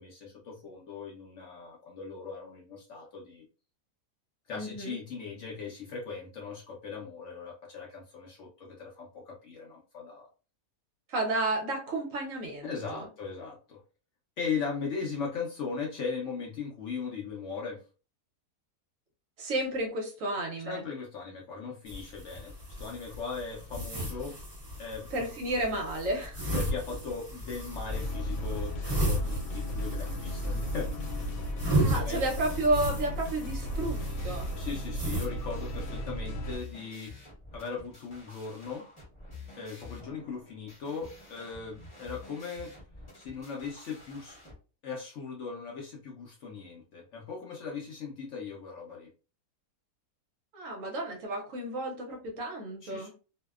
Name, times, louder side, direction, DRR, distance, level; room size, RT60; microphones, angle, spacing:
voice 1, 0.0-3.5 4.5-10.3 12.6-13.8 14.4-17.8 20.7-24.3 24.8-25.1 26.5-30.9 31.8-32.2 34.6-37.1 37.5-38.8 39.6-42.7 43.1-44.4 44.8-49.1 52.8-53.1, left 5 dB, 70° left, -1 dB, 0.7 m, -38 dB
voice 2, 4.5-5.0 11.1-13.1 19.4-20.8 25.1-26.4 31.8-34.0 34.2-34.5 50.5-53.1, right 2 dB, 65° right, 1 dB, 0.9 m, -32 dB
sound 1, 21.9-35.3, right 1 dB, 20° right, 0.9 m, -35 dB
sound 2, 27.9-36.6, equal, 90° left, 1.2 m, -35 dB
sound 3, 33.6-44.5, left 3 dB, 25° left, 0.7 m, -49 dB
2.6 x 2.1 x 2.3 m, 0.35 s
omnidirectional pair, 1.7 m